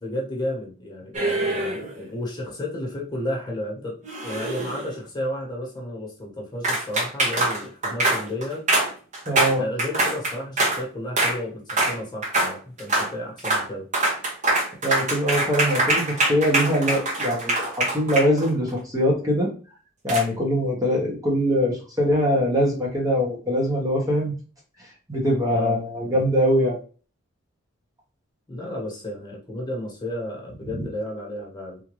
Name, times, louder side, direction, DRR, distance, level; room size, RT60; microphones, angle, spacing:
voice 1, 0.0-8.7 9.5-13.9 25.5-25.8 26.0-26.2 28.5-31.8, left 1 dB, 20° left, -2 dB, 1.2 m, -32 dB
sound 1, 1.1-2.0 4.0-5.0 6.6-10.8 11.2-11.4 11.7-12.0 12.2-12.5 12.8-13.1 13.4-13.7 13.9-18.7 20.1-20.2, right 2 dB, 40° right, 1.0 m, -24 dB
voice 2, 9.3-9.6 14.8-19.5 20.0-24.3 25.1-26.8 30.8-30.9, equal, 20° right, -3 dB, 0.9 m, -22 dB
3.6 x 2.5 x 3.1 m, 0.37 s
head